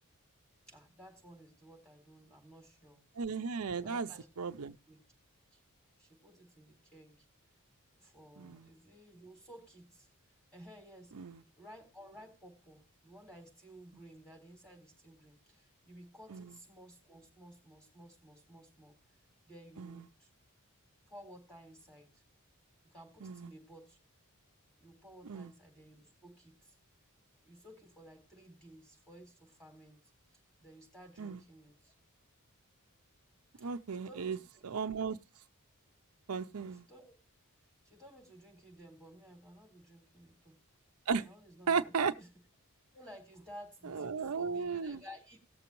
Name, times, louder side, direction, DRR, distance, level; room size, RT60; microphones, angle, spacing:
voice 1, 0.7-3.1 3.8-4.3 4.9-5.0 5.5-5.6 6.0-7.2 8.0-10.1 10.5-11.1 11.6-18.9 19.5-20.3 21.1-22.2 22.8-24.0 24.8-26.7 27.4-30.0 30.3-31.9 33.6-34.4 36.5-37.1 37.8-40.6 41.1-41.9 42.2-42.3 42.9-45.4, equal, 5° left, 3.9 m, -55 dB
voice 2, 3.2-4.1 4.4-4.8 8.4-8.7 11.1-11.4 16.3-16.5 19.8-20.0 23.2-23.5 25.2-25.5 31.2-31.4 33.6-34.4 34.6-35.2 36.3-36.9 41.1-41.3 41.7-42.1 43.8-45.0, right 5 dB, 85° right, 0.6 m, -35 dB
19.0 x 7.0 x 3.0 m
head